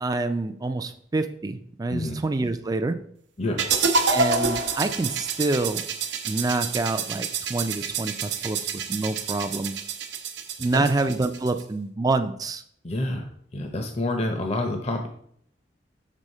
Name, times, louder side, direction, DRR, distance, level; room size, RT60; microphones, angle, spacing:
voice 1, 0.0-3.0 4.1-5.9 6.2-9.7 10.6-12.6, right 2 dB, 20° right, 8 dB, 0.4 m, -27 dB
sound 1, 3.6-11.6, right 4 dB, 85° right, 0.7 m, -28 dB
voice 2, 12.8-13.3 13.5-15.1, left 1 dB, 35° left, 4 dB, 0.7 m, -27 dB
6.3 x 3.5 x 5.4 m, 0.64 s
head